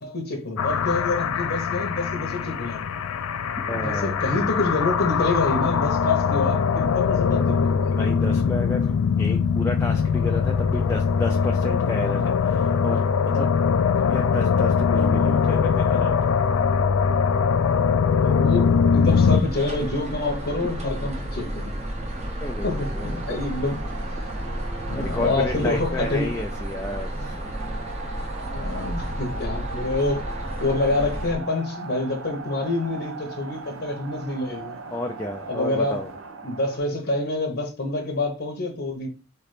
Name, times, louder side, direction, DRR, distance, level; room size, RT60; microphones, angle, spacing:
voice 1, 0.0-2.9 3.7-7.9 13.9-14.1 18.2-21.7 22.6-23.8 24.1-24.2 24.9-26.3 27.2-27.3 28.5-30.2 30.6-34.8 35.5-36.0 36.4-39.1, left 2 dB, 50° left, 0.8 m, -27 dB
sound 1, 0.6-19.4, left 6 dB, 80° left, 0.4 m, -22 dB
voice 2, 3.6-4.2 7.9-13.1 13.3-13.5 14.1-16.3 22.4-23.4 24.9-27.4 34.9-36.1, left 2 dB, 10° left, 0.3 m, -31 dB
sound 2, 19.0-31.3, equal, 30° right, 0.8 m, -32 dB
sound 3, 21.8-36.8, right 3 dB, 60° right, 0.6 m, -39 dB
4.0 x 3.3 x 4.0 m
head